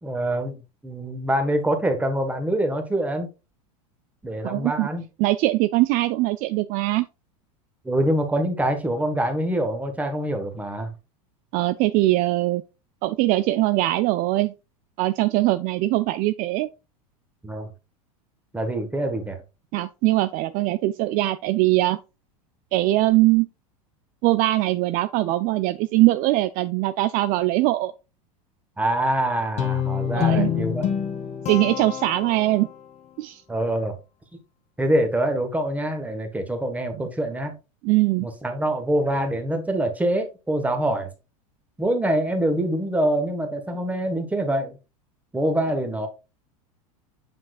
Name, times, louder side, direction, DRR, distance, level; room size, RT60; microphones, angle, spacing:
voice 1, 0.0-3.3 4.2-5.0 7.8-10.9 17.4-17.7 18.5-19.4 28.8-30.9 33.5-33.9 34.8-37.5 38.2-41.1 41.8-44.8 45.3-46.1, right 1 dB, 10° right, 1.5 m, -25 dB
voice 2, 4.4-4.9 5.2-7.1 11.5-12.6 13.0-14.5 15.0-16.7 19.7-22.0 22.7-23.5 24.2-27.9 30.1-30.5 31.5-32.7 33.2-33.4 37.8-38.3, right 17 dB, 50° right, 0.4 m, -21 dB
Guitar, 29.6-32.9, left 10 dB, 35° left, 1.3 m, -26 dB
7.6 x 5.9 x 2.4 m
hypercardioid pair, 105°, 19 cm